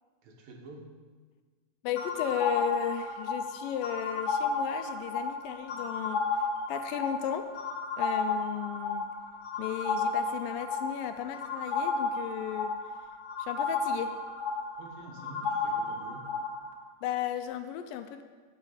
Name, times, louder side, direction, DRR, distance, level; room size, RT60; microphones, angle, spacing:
voice 1, 0.2-0.8 14.8-16.3, right 2 dB, 70° right, 1 dB, 3.1 m, -47 dB
voice 2, 1.8-6.3 6.7-7.5 8.0-9.1 9.6-12.7 13.4-14.1 17.0-18.2, left 10 dB, 80° left, 9 dB, 2.1 m, -34 dB
sound 1, 2.0-16.7, left 4 dB, 60° left, 1.9 m, -33 dB
15.0 x 6.1 x 5.7 m, 1.4 s
omnidirectional pair, 4.2 m